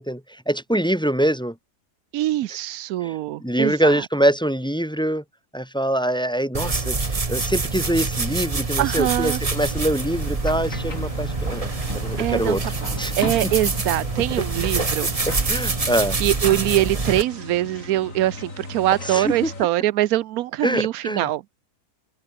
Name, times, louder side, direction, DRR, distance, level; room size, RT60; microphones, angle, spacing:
voice 1, 0.0-1.6 3.0-5.2 5.5-11.7 12.0-12.6 13.0-13.1 15.3-16.2 19.0-19.5 20.6-21.3, right 1 dB, 5° left, 1.8 m, -24 dB
voice 2, 2.1-4.0 8.8-9.4 12.2-12.6 12.8-12.9 13.2-15.1 16.2-21.4, right 14 dB, 90° right, 1.1 m, -23 dB
sound 1, 6.5-17.2, right 3 dB, 25° right, 1.4 m, -26 dB
sound 2, 9.5-19.7, left 3 dB, 65° left, 4.6 m, -37 dB
open air
omnidirectional pair, 1.5 m